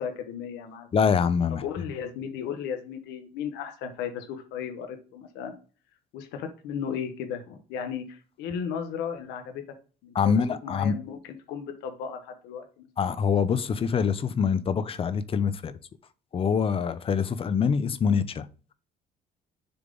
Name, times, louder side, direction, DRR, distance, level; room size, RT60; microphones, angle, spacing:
voice 1, 0.0-0.9 1.5-5.5 6.1-9.6 10.0-12.9, left 7 dB, 90° left, 0.9 m, -35 dB
voice 2, 0.9-1.6 10.1-10.9 13.0-15.8 16.3-18.5, left 6 dB, 35° left, 0.6 m, -25 dB
6.8 x 3.6 x 3.8 m
cardioid pair, 110°, 17 cm